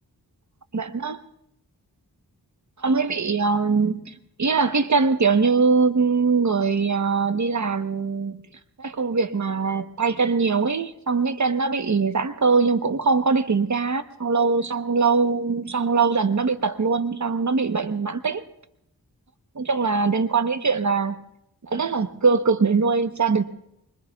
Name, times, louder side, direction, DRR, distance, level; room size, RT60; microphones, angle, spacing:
voice 1, 0.7-1.2 2.8-8.4 8.8-18.4 19.6-21.1 21.7-23.4, right 4 dB, 45° right, 9 dB, 1.0 m, -22 dB
25.0 x 22.5 x 2.4 m, 0.79 s
wide cardioid pair, 60°, 39 cm